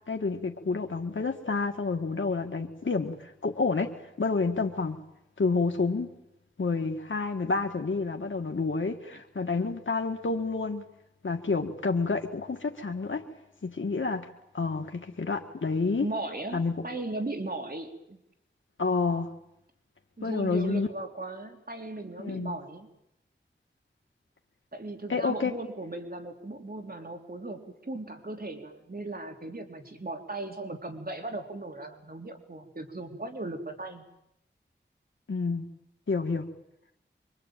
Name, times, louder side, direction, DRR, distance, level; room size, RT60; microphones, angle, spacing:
voice 1, 0.1-3.9 4.2-5.0 5.4-6.1 6.6-10.8 11.2-13.2 13.6-14.3 14.5-16.1 16.5-16.7 18.8-19.3 20.2-20.9 22.2-22.5 25.1-25.5 35.3-35.7 36.1-36.5, left 4 dB, 85° left, 3 dB, 1.8 m, -29 dB
voice 2, 16.0-18.2 20.2-22.9 24.7-34.1, right 2 dB, 50° right, 4 dB, 3.8 m, -37 dB
25.5 x 24.0 x 9.2 m, 0.81 s
wide cardioid pair, 55°, 19 cm